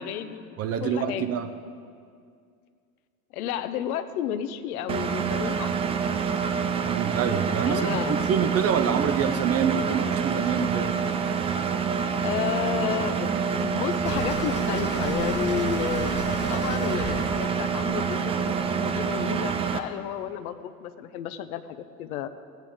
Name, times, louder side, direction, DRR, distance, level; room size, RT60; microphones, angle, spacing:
voice 1, 0.0-1.3 3.3-5.7 7.6-8.2 12.1-16.2 16.5-22.3, left 10 dB, 65° left, 10 dB, 0.8 m, -32 dB
voice 2, 0.6-1.5 6.9-10.9, right 7 dB, 30° right, 9 dB, 0.7 m, -26 dB
Engine, 4.9-19.8, right 6 dB, 15° right, 0.3 m, -27 dB
sound 1, 14.1-19.0, left 3 dB, 25° left, 1.3 m, -35 dB
16.5 x 9.1 x 3.6 m, 2.2 s
figure-of-eight pair, 75°, 46 cm